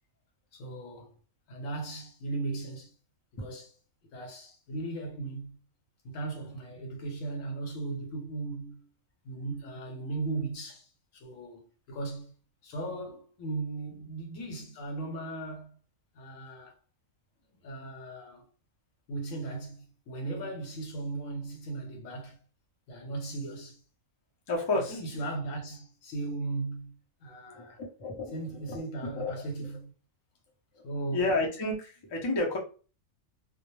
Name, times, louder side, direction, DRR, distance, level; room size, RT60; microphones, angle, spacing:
voice 1, 0.5-1.1 1.5-2.9 3.4-3.7 4.1-5.6 6.0-8.9 9.2-11.6 11.9-12.3 12.6-15.8 16.1-16.8 17.5-18.5 19.1-22.4 22.9-23.8 24.8-26.9 27.2-27.8 28.3-29.9 30.8-31.3, right 2 dB, 80° left, 1.1 m, -37 dB
voice 2, 24.5-25.0 27.5-28.4 28.7-29.4 30.7-30.8 31.1-32.6, left 2 dB, 35° left, 0.4 m, -31 dB
2.2 x 2.1 x 3.0 m
omnidirectional pair, 1.4 m